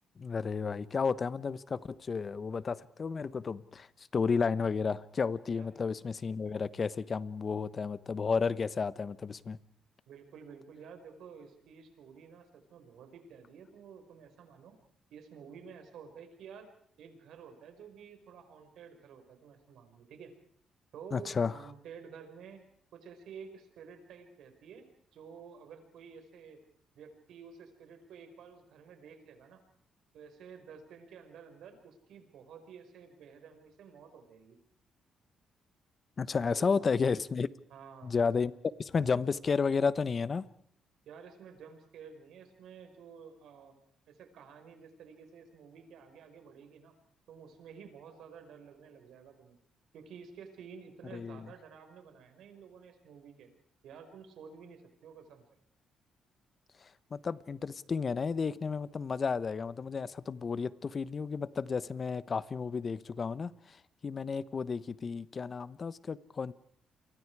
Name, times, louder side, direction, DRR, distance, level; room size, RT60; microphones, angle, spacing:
voice 1, 0.2-9.6 21.1-21.5 36.2-37.5 38.0-38.5 38.8-40.5 51.1-51.4 56.8-66.5, left 5 dB, 40° left, 1.1 m, -32 dB
voice 2, 10.1-14.8 15.1-16.7 17.0-20.3 20.9-22.6 22.9-26.6 27.0-29.6 30.1-34.6 36.5-36.9 37.7-38.2 41.1-43.8 44.1-47.0 47.3-49.6 49.9-53.5 53.8-55.4, right 6 dB, 75° right, 5.2 m, -51 dB
29.5 x 24.0 x 4.8 m
cardioid pair, 90°, 0 cm